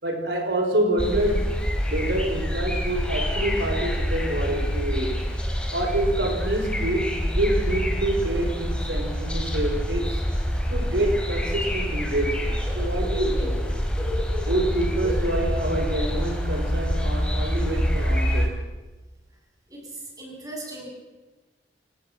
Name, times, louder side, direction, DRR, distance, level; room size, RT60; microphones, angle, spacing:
voice 1, 0.0-5.3 5.7-10.2 10.7-13.6 14.4-18.6, right 1 dB, 70° right, 3 dB, 5.1 m, -27 dB
sound 1, 1.0-18.5, equal, 5° left, 4.0 m, -26 dB
voice 2, 19.7-20.9, right 2 dB, 20° right, -1 dB, 7.9 m, -38 dB
27.0 x 18.5 x 6.1 m, 1.2 s
head